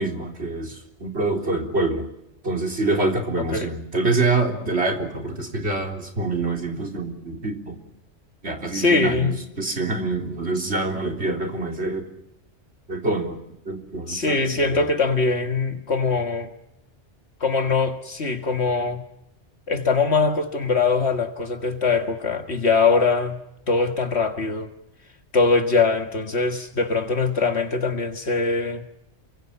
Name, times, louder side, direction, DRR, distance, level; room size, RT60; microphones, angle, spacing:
voice 1, 0.0-2.1 2.4-7.8 8.4-12.1 12.9-13.4 13.7-14.9, right 2 dB, 70° right, 3.9 m, -26 dB
voice 2, 8.7-9.4 14.1-16.5 17.4-19.0 19.7-23.4 23.7-24.7 25.3-28.8, left 4 dB, 65° left, 2.0 m, -22 dB
29.0 x 24.5 x 5.7 m
omnidirectional pair, 1.2 m